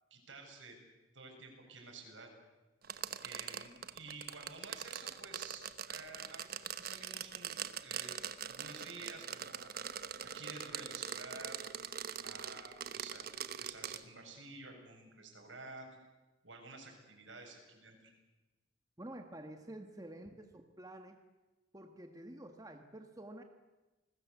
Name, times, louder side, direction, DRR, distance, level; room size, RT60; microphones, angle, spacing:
voice 1, 0.1-0.8 1.1-2.3 3.2-8.2 8.4-9.7 10.2-11.6 12.2-13.3 13.6-15.9 16.4-18.1, right 3 dB, 80° right, 2 dB, 7.3 m, -51 dB
sound 1, 2.8-14.0, right 8 dB, 50° right, 1.1 m, -43 dB
voice 2, 19.0-21.2 21.7-23.4, right 1 dB, 20° right, 5 dB, 1.5 m, -49 dB
29.0 x 20.5 x 8.3 m, 1.1 s
head